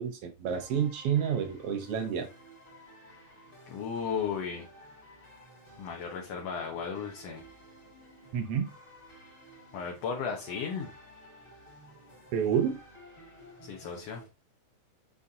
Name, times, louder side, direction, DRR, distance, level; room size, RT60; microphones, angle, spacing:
voice 1, 0.0-2.3 8.3-8.7 12.3-12.8, right 8 dB, 65° right, 8 dB, 1.6 m, -29 dB
sound 1, 0.5-14.2, equal, 20° left, 1.9 m, -53 dB
voice 2, 3.7-4.7 5.8-7.4 9.7-10.9 13.6-14.2, left 6 dB, 65° left, 1 dB, 2.0 m, -35 dB
7.0 x 6.2 x 2.8 m, 0.26 s
omnidirectional pair, 3.3 m